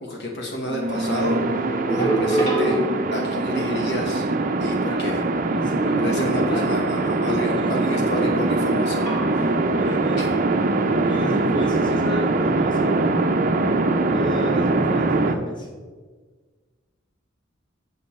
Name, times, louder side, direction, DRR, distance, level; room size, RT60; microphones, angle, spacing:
voice 1, 0.0-4.3 4.6-5.2 6.0-9.4 10.2-10.3, left 1 dB, 60° left, 0 dB, 1.1 m, -29 dB
sound 1, 0.7-15.4, right 2 dB, 45° right, 0.5 m, -22 dB
sound 2, 1.3-3.5 5.8-7.0 9.0-9.7 10.2-10.4, right 1 dB, 40° left, 1.8 m, -27 dB
voice 2, 1.9-2.3 4.8-5.1 5.5-6.9 7.5-7.7 8.1-8.2 9.6-10.3 11.0-13.0 14.0-15.7, equal, 25° left, -3 dB, 1.6 m, -32 dB
7.0 x 6.7 x 4.2 m, 1.5 s
head